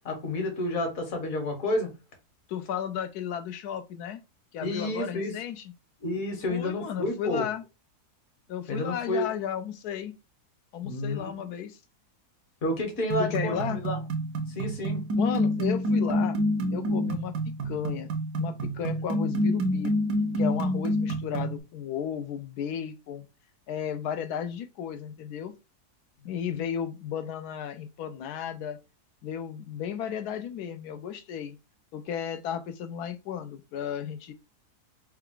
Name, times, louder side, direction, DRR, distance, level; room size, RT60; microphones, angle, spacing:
voice 1, 0.0-1.9 4.6-5.3 6.0-7.5 8.7-9.3 10.8-11.5 12.6-14.0 14.5-15.0 26.5-26.6, left 1 dB, 60° left, 1.6 m, -30 dB
voice 2, 2.5-4.2 4.5-5.7 6.5-7.6 8.5-10.1 10.7-11.8 13.2-13.8 15.2-16.4 16.7-17.3 17.6-20.0 20.4-23.3 23.7-25.5 26.2-28.8 29.2-31.6 31.9-34.3, left 8 dB, 75° left, 1.1 m, -34 dB
sound 1, 13.1-21.6, equal, 80° right, 1.3 m, -28 dB
4.4 x 2.3 x 3.7 m
omnidirectional pair, 1.7 m